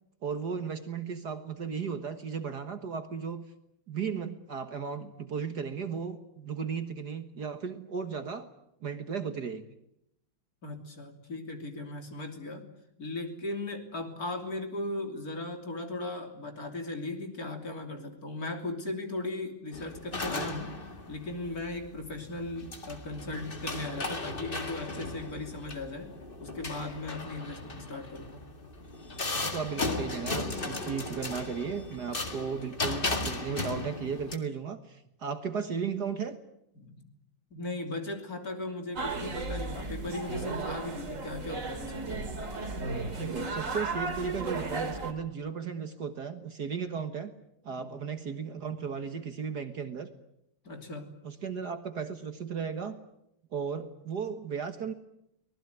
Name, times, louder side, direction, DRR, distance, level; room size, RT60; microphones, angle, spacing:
voice 1, 0.2-3.4 3.9-8.5 8.8-9.6 29.3-36.4 43.2-47.3 47.6-50.1 51.2-53.0 53.5-54.9, right 6 dB, 50° right, 8 dB, 1.9 m, -35 dB
voice 2, 10.6-12.7 13.0-20.8 21.1-28.4 36.8-37.1 37.5-42.5 47.7-47.9 50.7-51.1, left 2 dB, 45° left, 4 dB, 3.6 m, -37 dB
sound 1, 19.7-34.3, left 3 dB, 25° left, 2.0 m, -36 dB
sound 2, 39.0-45.1, right 3 dB, 35° right, 2.9 m, -35 dB
24.5 x 20.0 x 9.3 m, 0.80 s
omnidirectional pair, 2.3 m